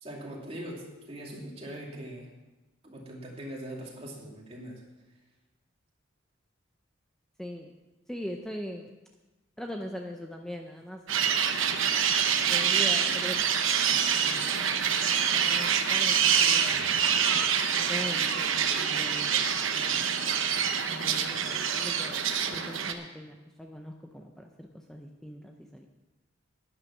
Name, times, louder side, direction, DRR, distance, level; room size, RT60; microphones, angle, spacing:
voice 1, 0.0-2.3 2.8-4.8, right 1 dB, 30° right, -2 dB, 2.6 m, -41 dB
voice 2, 7.4-7.7 8.1-8.9 9.6-11.0 11.8-12.1 12.4-14.9 15.3-17.1 17.8-20.1 20.7-25.9, equal, 5° left, 2 dB, 0.6 m, -41 dB
sound 1, 11.1-22.9, right 7 dB, 70° right, 0.9 m, -26 dB
11.5 x 9.9 x 5.9 m, 1.1 s
head